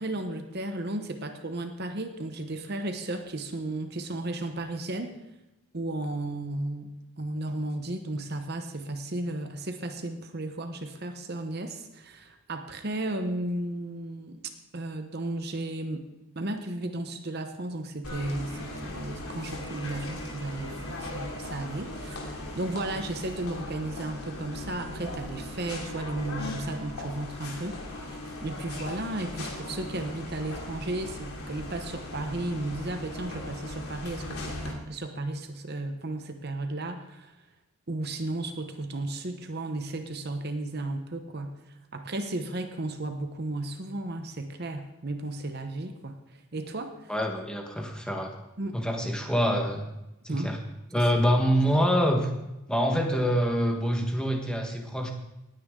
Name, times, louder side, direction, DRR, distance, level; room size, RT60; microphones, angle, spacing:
voice 1, 0.0-5.2 5.7-14.4 14.7-16.1 16.4-37.3 37.9-41.6 41.9-46.2 46.5-47.1 48.6-48.8 50.3-50.5 50.9-51.0, right 2 dB, 45° right, 6 dB, 0.9 m, -34 dB
sound 1, 18.0-34.7, left 1 dB, 90° left, 3.0 m, -38 dB
voice 2, 47.1-48.3 48.7-49.8 50.2-50.6 50.9-52.3 52.7-55.1, equal, 5° left, 1 dB, 1.3 m, -25 dB
19.0 x 9.6 x 3.7 m, 0.95 s
head